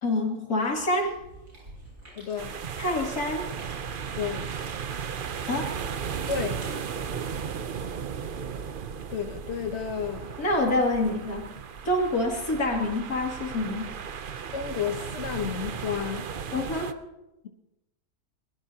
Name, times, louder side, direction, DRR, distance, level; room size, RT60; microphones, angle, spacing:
voice 1, 0.0-1.1 2.8-3.5 5.5-5.7 7.1-7.2 10.4-11.5 11.8-13.9 16.5-16.9, left 1 dB, 65° left, 3.2 m, -26 dB
Chewing mastication, 0.6-7.5, right 1 dB, 90° right, 7.5 m, -50 dB
voice 2, 2.2-2.6 4.2-4.5 6.3-6.6 9.1-10.4 14.5-16.3, left 7 dB, 50° left, 1.2 m, -31 dB
sound 1, 2.4-16.9, right 7 dB, 55° right, 0.6 m, -35 dB
22.0 x 20.5 x 2.9 m
omnidirectional pair, 1.7 m